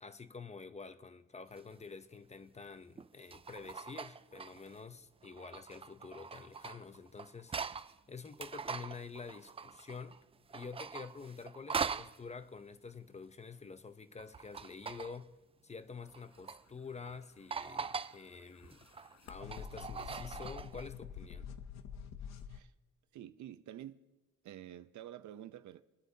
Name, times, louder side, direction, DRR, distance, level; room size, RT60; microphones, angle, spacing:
voice 1, 0.0-10.2 10.5-15.3 15.6-18.8 19.3-21.5, left 5 dB, 20° left, 0.7 m, -48 dB
sound 1, 1.6-1.7 3.0-4.8 5.2-7.9 8.2-10.2 10.5-12.2 14.2-15.2 16.1-16.6 17.0-17.1 17.5-18.2 18.6-20.9, right 5 dB, 20° right, 0.3 m, -42 dB
sound 2, 17.4-22.6, left 7 dB, 65° left, 0.9 m, -48 dB
voice 2, 23.1-24.0 24.4-25.8, right 11 dB, 70° right, 0.7 m, -49 dB
25.5 x 9.3 x 2.8 m
cardioid pair, 90°, 30 cm